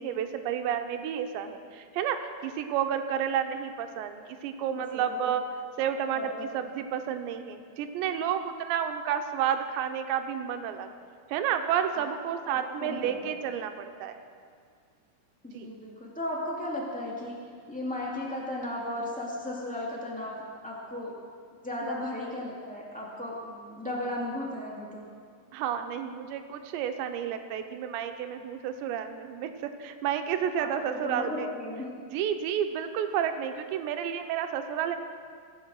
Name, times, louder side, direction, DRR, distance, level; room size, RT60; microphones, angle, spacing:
voice 1, 0.0-5.4 5.8-10.9 11.3-14.2 15.5-15.7 21.8-21.9 25.5-31.5 32.1-35.0, right 9 dB, 90° right, 7 dB, 3.1 m, -31 dB
voice 2, 4.7-5.2 6.1-6.5 12.5-13.2 15.4-21.1 21.6-25.0 30.6-31.9, left 1 dB, 10° left, -5 dB, 0.4 m, -35 dB
22.5 x 8.2 x 6.4 m, 2.1 s
omnidirectional pair, 5.0 m